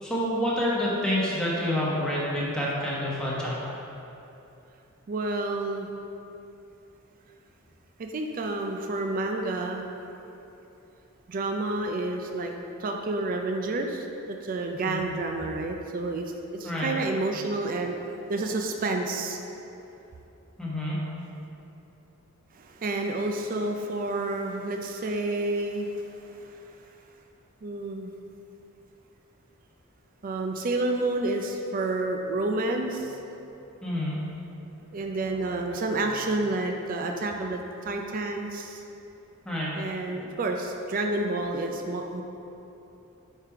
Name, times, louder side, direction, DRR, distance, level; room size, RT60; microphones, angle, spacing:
voice 1, 0.0-3.7 14.8-15.1 16.6-16.9 20.6-21.0 33.8-34.2 39.4-39.7, left 1 dB, 5° left, -7 dB, 1.1 m, -28 dB
voice 2, 5.1-5.9 8.0-9.8 11.3-12.5 12.8-16.3 16.6-19.5 22.5-26.6 27.6-28.1 30.2-33.2 34.9-38.8 39.8-42.2, right 2 dB, 40° right, 3 dB, 0.4 m, -29 dB
5.0 x 4.6 x 4.7 m, 2.9 s
head